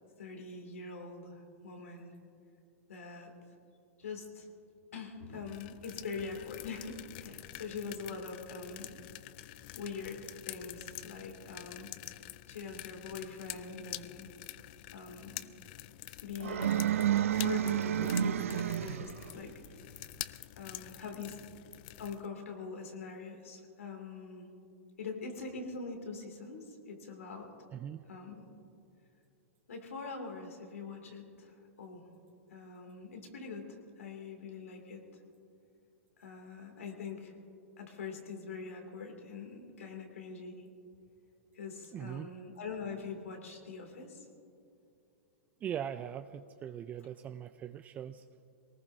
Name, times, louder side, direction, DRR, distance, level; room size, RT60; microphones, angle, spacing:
voice 1, 0.2-2.1 2.9-3.3 4.0-4.5 4.9-9.0 9.7-11.9 12.5-14.3 14.9-15.5 16.2-16.8 17.3-19.6 20.6-21.4 22.0-24.6 25.0-27.6 28.0-28.5 29.7-32.1 32.5-35.0 36.2-37.4 37.8-40.6 41.5-44.3, left 4 dB, 85° left, 3 dB, 2.6 m, -43 dB
sound 1, 5.5-22.3, left 17 dB, 45° left, 0.4 m, -47 dB
sound 2, 16.4-19.3, right 10 dB, 80° right, 0.5 m, -30 dB
voice 2, 27.7-28.0 41.9-42.3 45.6-48.2, right 9 dB, 20° right, 10 dB, 0.4 m, -40 dB
22.5 x 19.0 x 2.7 m, 2.6 s
hypercardioid pair, 130°, 7 cm